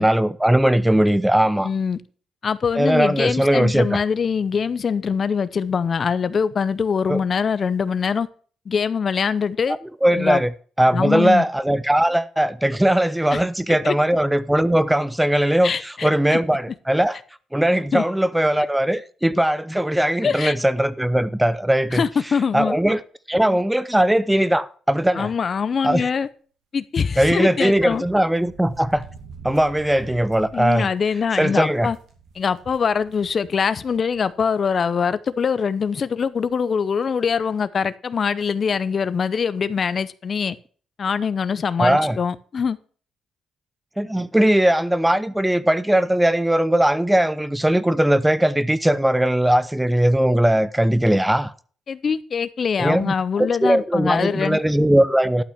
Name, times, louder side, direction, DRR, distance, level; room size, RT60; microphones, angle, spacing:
voice 1, 0.0-1.7 2.8-4.0 7.1-7.2 10.0-10.5 10.8-17.2 17.5-22.0 22.5-23.0 23.3-25.3 25.8-26.1 27.2-29.0 29.4-30.9 31.4-31.9 41.8-42.2 44.0-51.5 52.8-55.4, right 1 dB, 5° right, 0.6 m, -19 dB
voice 2, 1.6-2.0 2.4-8.3 8.7-9.8 10.2-10.4 10.9-11.4 13.3-13.4 13.8-13.9 15.6-16.4 17.9-18.0 20.2-20.5 21.9-22.8 25.1-26.3 26.7-28.0 30.5-32.0 32.3-40.6 41.0-42.8 51.9-54.6, left 6 dB, 45° left, 0.6 m, -23 dB
sound 1, 27.6-34.3 34.7-34.8 35.8-35.9 36.2-36.5, right 6 dB, 75° right, 2.6 m, -46 dB
12.0 x 5.9 x 5.8 m
cardioid pair, 90°, 0 cm